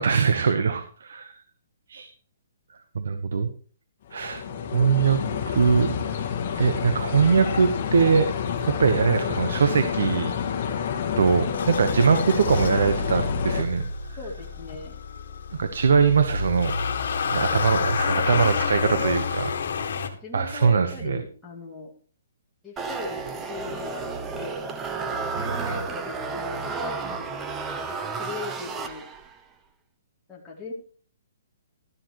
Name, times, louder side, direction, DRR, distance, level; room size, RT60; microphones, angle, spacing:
voice 1, 0.0-1.3 1.9-2.1 2.9-3.5 4.1-4.4 4.7-5.2 5.5-6.1 6.5-8.3 8.6-10.3 11.2-13.9 15.5-16.7 17.3-19.4 20.3-21.2 25.4-25.8, right 5 dB, 70° right, 9 dB, 1.2 m, -22 dB
sound 1, 4.1-13.6, left 7 dB, 30° left, 1.9 m, -29 dB
voice 2, 4.5-4.8 14.2-15.0 17.7-19.6 20.2-21.9 22.6-24.7 25.1-27.4 27.9-29.1 30.3-30.7, left 4 dB, 5° left, -4 dB, 2.1 m, -38 dB
Motor vehicle (road) / Engine starting, 11.5-20.1, left 5 dB, 60° left, 2.0 m, -29 dB
sound 2, 22.8-29.4, right 4 dB, 10° right, 0.7 m, -32 dB
12.5 x 12.0 x 3.2 m, 0.41 s
hypercardioid pair, 175°, 0 cm